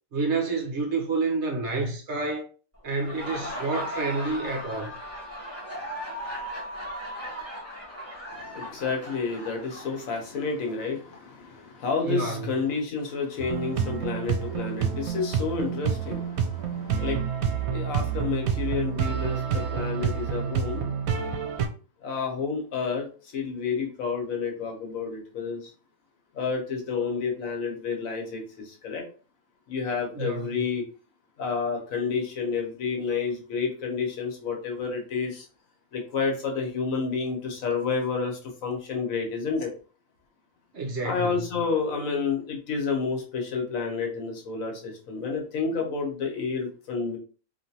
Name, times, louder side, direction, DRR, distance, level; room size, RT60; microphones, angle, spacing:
voice 1, 0.1-2.5 2.8-4.9 12.0-12.5 30.1-30.5 40.7-41.4, right 3 dB, 60° right, 1.0 m, -29 dB
Laughter, 2.9-10.5, equal, 10° right, 1.1 m, -37 dB
voice 2, 8.3-20.9 22.0-25.7 26.3-29.0 29.7-30.8 31.4-35.5 35.9-39.7 41.0-47.2, left 5 dB, 75° left, 1.3 m, -30 dB
sound 1, 13.4-21.7, right 7 dB, 90° right, 1.0 m, -28 dB
3.2 x 2.6 x 2.8 m
omnidirectional pair, 1.5 m